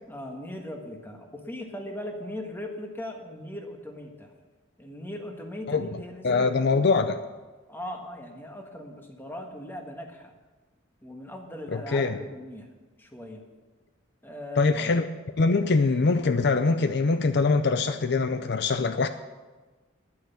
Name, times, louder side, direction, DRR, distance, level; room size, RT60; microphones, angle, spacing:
voice 1, 0.1-4.3 4.8-6.7 7.7-10.3 11.0-12.7 13.0-13.4 14.2-14.9, left 1 dB, 10° left, 3 dB, 1.5 m, -39 dB
voice 2, 6.2-7.2 11.7-12.1 14.6-15.0 15.4-19.1, left 4 dB, 60° left, 10 dB, 0.5 m, -23 dB
10.5 x 9.5 x 7.0 m, 1.3 s
head